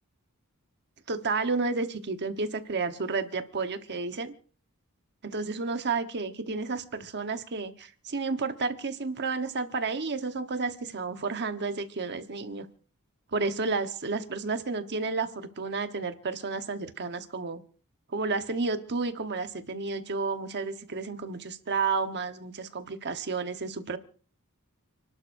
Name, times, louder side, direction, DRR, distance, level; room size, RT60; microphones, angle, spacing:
voice 1, 1.1-4.3 5.2-12.7 13.3-17.6 18.1-24.0, right 4 dB, 50° right, 8 dB, 1.2 m, -31 dB
30.0 x 12.0 x 2.6 m, 0.41 s
head